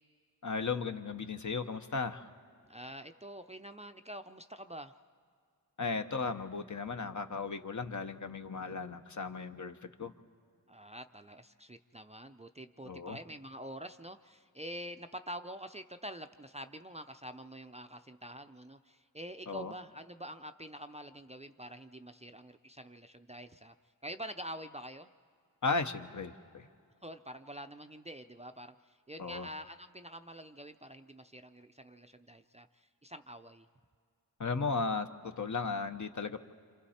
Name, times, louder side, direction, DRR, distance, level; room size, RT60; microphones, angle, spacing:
voice 1, 0.4-2.3 5.8-10.1 12.9-13.2 19.5-19.7 25.6-26.7 29.2-29.5 34.4-36.4, left 4 dB, 50° left, 7 dB, 0.9 m, -36 dB
voice 2, 2.7-4.9 10.7-23.7 24.0-25.1 27.0-33.7, equal, 15° right, 7 dB, 0.5 m, -46 dB
27.5 x 27.0 x 4.3 m, 2.2 s
wide cardioid pair, 75°, 38 cm